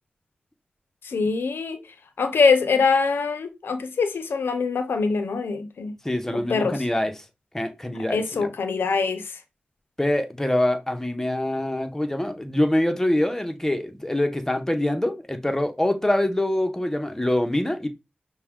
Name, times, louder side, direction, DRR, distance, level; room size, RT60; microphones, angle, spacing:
voice 1, 1.0-1.8 2.2-5.9 6.3-6.8 8.1-9.2, left 4 dB, 90° left, 0.5 m, -23 dB
voice 2, 6.0-7.1 7.5-8.5 10.0-17.9, left 1 dB, 10° left, 0.7 m, -24 dB
5.7 x 2.1 x 3.6 m
cardioid pair, 60°, 4 cm